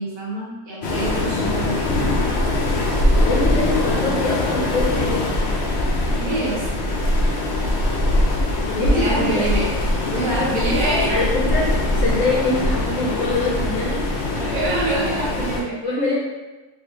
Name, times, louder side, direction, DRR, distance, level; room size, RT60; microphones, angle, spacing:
voice 1, 0.0-2.1 6.2-6.7 8.8-9.8 10.1-11.1 14.3-15.8, right 1 dB, 65° right, -5 dB, 1.2 m, -25 dB
Waves surf, 0.8-15.6, left 1 dB, 90° left, 0.5 m, -22 dB
voice 2, 3.2-5.3 8.6-9.5 11.1-14.0 15.8-16.2, left 3 dB, 65° left, -4 dB, 0.8 m, -24 dB
3.4 x 2.6 x 2.8 m, 1.2 s
omnidirectional pair, 1.7 m